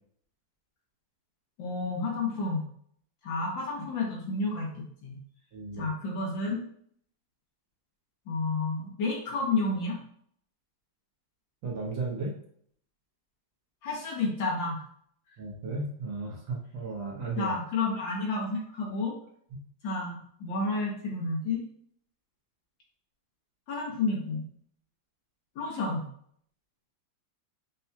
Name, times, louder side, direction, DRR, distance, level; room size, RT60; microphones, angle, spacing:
voice 1, 1.6-2.7 3.2-4.7 5.0-5.2 5.8-6.6 8.3-10.0 13.8-14.8 17.4-19.2 19.8-21.6 23.7-24.5 25.6-26.0, left 3 dB, 80° left, -2 dB, 1.7 m, -30 dB
voice 2, 5.5-5.9 11.6-12.3 15.4-17.6, right 3 dB, 85° right, -1 dB, 1.8 m, -34 dB
6.0 x 2.3 x 2.8 m, 0.63 s
omnidirectional pair, 2.0 m